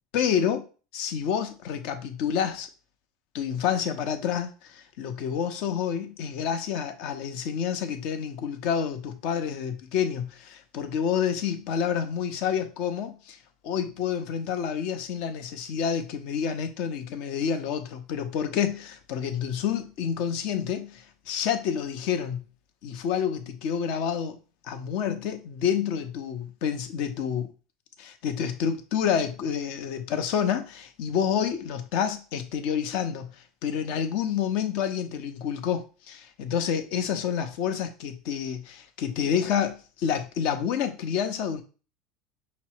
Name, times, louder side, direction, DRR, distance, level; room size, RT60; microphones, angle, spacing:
voice 1, 0.1-0.6 0.9-2.7 3.3-13.4 13.6-22.4 22.8-24.4 24.6-27.5 28.0-33.3 33.6-41.6, left 8 dB, 55° left, 0.7 m, -28 dB
5.9 x 2.1 x 4.4 m
supercardioid pair, 160°, 2 cm